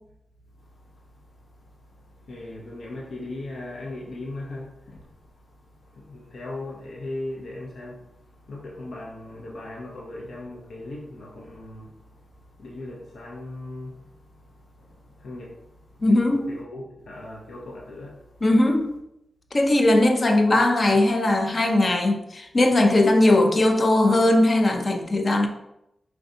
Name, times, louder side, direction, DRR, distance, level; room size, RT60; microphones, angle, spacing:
voice 1, 2.2-5.1 5.9-8.0 8.5-12.2 12.6-18.3 20.9-21.0, left 2 dB, 90° left, -2 dB, 0.7 m, -38 dB
voice 2, 16.0-16.5 18.4-18.9 19.5-25.5, left 1 dB, 35° left, 5 dB, 0.4 m, -19 dB
4.9 x 3.3 x 2.6 m, 0.83 s
wide cardioid pair, 175°, 0 cm